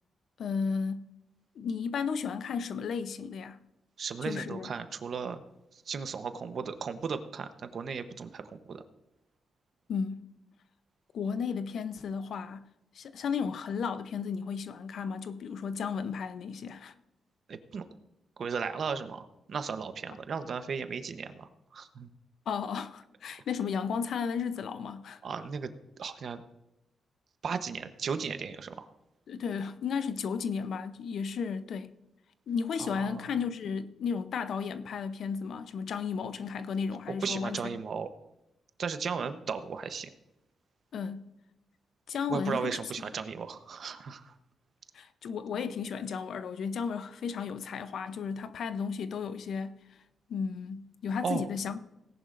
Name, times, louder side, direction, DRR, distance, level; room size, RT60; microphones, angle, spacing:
voice 1, 0.4-1.1 1.6-3.6 4.2-4.7 9.9-10.3 11.1-12.7 12.9-16.9 22.5-25.2 29.3-32.0 32.5-37.6 40.9-41.3 42.1-42.8 44.9-49.8 50.3-51.8, left 6 dB, 70° left, 0.7 m, -34 dB
voice 2, 4.0-5.4 5.7-8.8 17.5-17.8 18.4-22.1 25.2-25.7 26.0-26.4 27.4-28.9 32.8-33.3 37.1-38.1 38.8-40.1 42.3-44.3 51.2-51.5, right 5 dB, 55° right, 0.9 m, -36 dB
18.0 x 11.0 x 2.6 m
cardioid pair, 110°, 0 cm